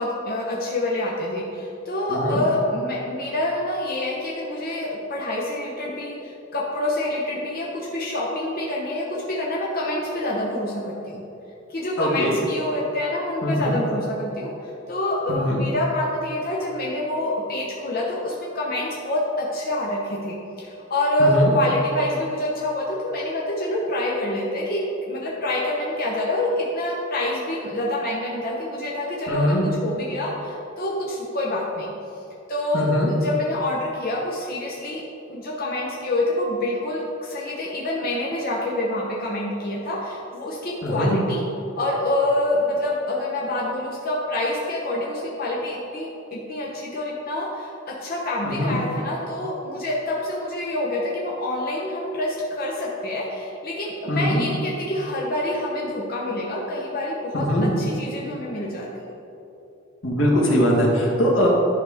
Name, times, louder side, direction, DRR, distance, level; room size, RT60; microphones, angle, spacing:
voice 1, 0.0-11.2 11.7-31.9 32.5-35.0 35.3-41.4 41.8-58.9, left 1 dB, 50° left, -4 dB, 0.9 m, -26 dB
voice 2, 2.1-2.4 12.0-12.4 13.4-13.8 15.3-15.6 21.2-21.5 29.3-29.7 32.7-33.1 40.8-41.2 48.4-48.8 54.1-54.5 57.3-57.7 60.0-61.5, equal, 85° left, -2 dB, 1.5 m, -21 dB
11.0 x 4.9 x 3.6 m, 2.9 s
head